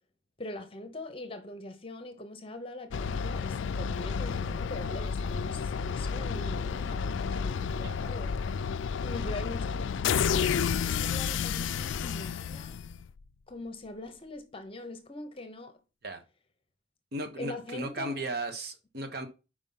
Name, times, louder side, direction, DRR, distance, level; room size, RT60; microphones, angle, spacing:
voice 1, 0.4-8.5 9.0-12.8 13.5-15.8 17.4-18.3, left 2 dB, 30° left, 0.8 m, -42 dB
sound 1, 2.9-13.2, left 6 dB, 70° left, 0.3 m, -31 dB
voice 2, 17.1-19.3, right 2 dB, 55° right, 1.1 m, -36 dB
5.3 x 4.9 x 5.5 m
head